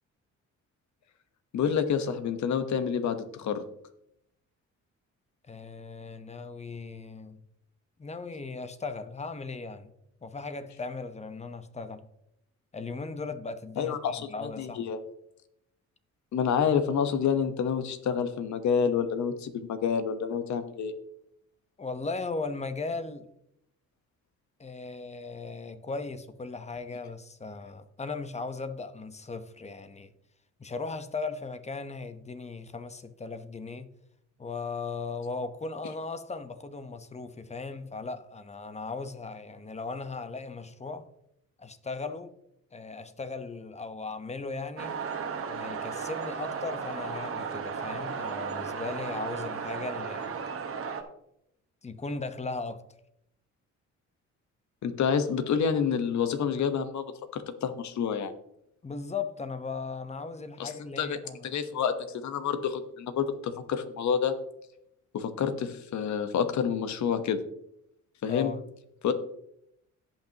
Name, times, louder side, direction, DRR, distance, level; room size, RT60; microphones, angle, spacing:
voice 1, 1.5-3.6 13.8-15.0 16.3-20.9 54.8-58.3 60.6-61.2 61.4-64.3 65.1-67.4 68.2-68.5 69.0-69.1, left 7 dB, 70° left, 1.2 m, -28 dB
voice 2, 5.5-7.4 8.0-9.9 10.2-12.1 12.7-14.9 21.8-23.3 24.6-30.1 30.6-33.9 34.4-41.1 41.6-42.3 42.7-45.0 45.5-50.3 51.8-52.8 58.8-61.6 68.3-68.6, left 4 dB, 20° left, 1.0 m, -37 dB
sound 1, 44.8-51.0, right 6 dB, 45° right, 1.4 m, -35 dB
17.0 x 5.9 x 2.9 m
cardioid pair, 90°, 30 cm